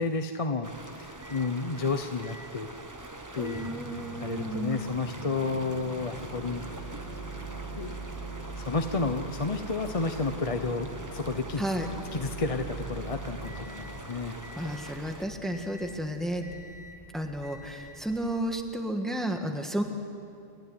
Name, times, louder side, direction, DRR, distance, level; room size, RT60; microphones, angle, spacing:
voice 1, 0.0-2.7 3.3-3.7 4.1-7.0 7.7-7.9 8.6-11.6 12.1-14.4, left 3 dB, 35° left, 6 dB, 0.9 m, -31 dB
sound 1, 0.6-15.2, right 2 dB, 20° right, 1.1 m, -45 dB
Microwave oven, 0.6-18.6, right 2 dB, 60° right, 4.5 m, -43 dB
voice 2, 3.4-4.8 11.6-11.9 14.5-16.5 17.1-19.8, right 1 dB, ahead, 4 dB, 1.6 m, -32 dB
28.5 x 13.0 x 9.8 m, 2.5 s
omnidirectional pair, 1.1 m